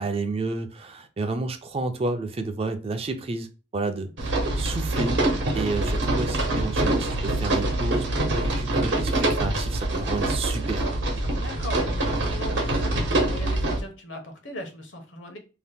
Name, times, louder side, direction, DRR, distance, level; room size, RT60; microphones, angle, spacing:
voice 1, 0.0-3.5 3.7-4.1 4.6-5.2 5.5-10.9, right 3 dB, 35° right, 8 dB, 0.4 m, -30 dB
sound 1, 4.2-13.8, right 1 dB, 75° right, 0.9 m, -25 dB
voice 2, 11.2-15.4, left 1 dB, 85° left, 4 dB, 0.8 m, -39 dB
2.8 x 2.1 x 3.3 m, 0.32 s
head